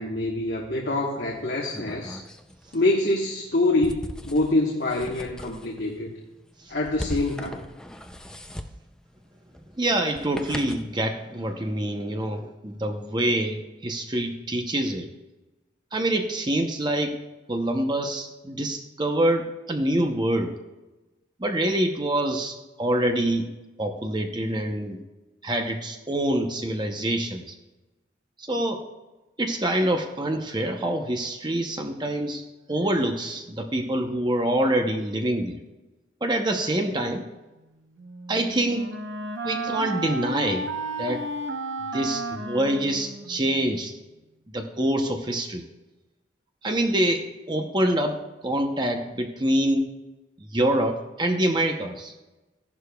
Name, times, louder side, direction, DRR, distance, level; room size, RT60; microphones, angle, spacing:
voice 1, 0.0-2.2 2.7-6.1 6.7-7.7, left 2 dB, 60° left, -1 dB, 1.2 m, -25 dB
sound 1, 1.3-11.0, equal, 5° left, 0.4 m, -40 dB
voice 2, 9.8-15.1 15.9-17.1 17.5-20.5 21.4-23.5 23.8-25.0 25.4-27.5 28.4-28.8 29.4-32.4 32.7-35.6 36.2-37.2 38.3-38.9 39.4-40.7 41.0-41.2 41.9-43.9 44.5-45.6 46.6-48.2 48.4-49.9 50.4-52.1, right 1 dB, 25° right, 4 dB, 0.8 m, -25 dB
Wind instrument woodwind instrument, 38.0-43.8, right 2 dB, 80° right, 0.9 m, -33 dB
14.5 x 11.0 x 2.3 m, 1.1 s
head